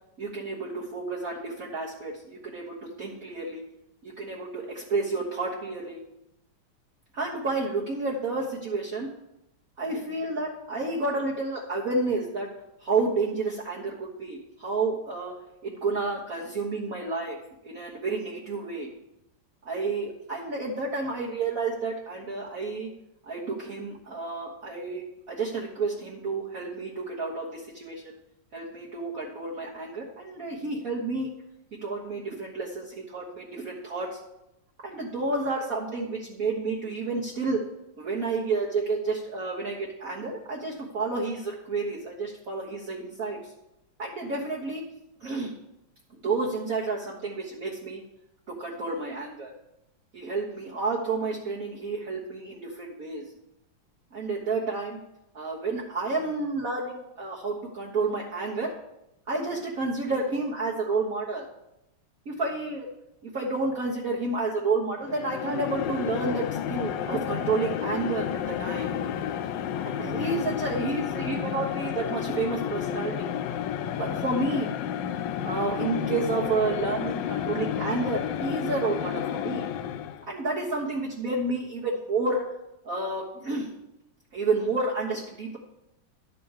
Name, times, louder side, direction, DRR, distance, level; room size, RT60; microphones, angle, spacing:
voice 1, 0.2-3.6 4.0-6.0 7.1-9.1 9.8-12.5 12.8-15.3 15.6-17.4 17.6-18.9 19.6-22.9 23.3-28.0 28.5-31.3 31.8-34.2 34.8-37.6 38.0-43.4 44.0-44.8 45.2-45.5 46.2-48.0 48.5-49.5 50.1-53.2 54.1-55.0 55.3-58.7 59.3-61.4 62.2-62.9 63.3-68.9 69.8-73.3 74.0-74.7 75.4-79.7 80.3-82.4 82.8-83.7 84.3-85.6, right 3 dB, 45° right, -4 dB, 1.5 m, -30 dB
sound 1, 65.0-80.3, left 9 dB, 75° left, 1.1 m, -31 dB
12.0 x 4.9 x 7.2 m, 0.86 s
omnidirectional pair, 2.3 m